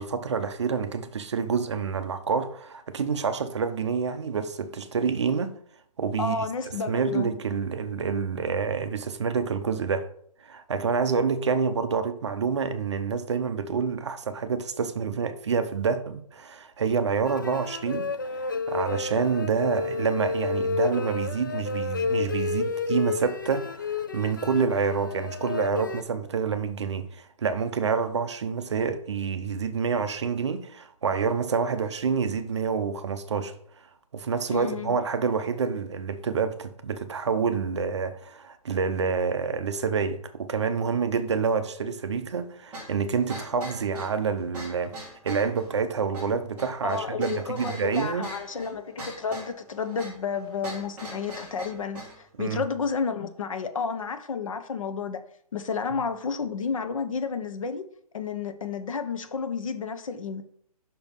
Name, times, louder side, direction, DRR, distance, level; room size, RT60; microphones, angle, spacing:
voice 1, 0.0-5.6 6.0-6.5 6.9-10.1 10.4-33.6 34.1-44.9 45.2-48.3 52.4-52.7, right 5 dB, 45° right, 0.7 m, -27 dB
voice 2, 6.2-7.4 34.5-34.9 46.8-55.2 55.5-57.8 58.1-60.4, left 5 dB, 60° left, 0.9 m, -31 dB
sound 1, 17.3-26.0, left 4 dB, 35° left, 0.3 m, -31 dB
sound 2, 42.7-52.2, right 1 dB, 10° right, 1.5 m, -41 dB
6.0 x 4.5 x 5.3 m
hypercardioid pair, 175°, 20 cm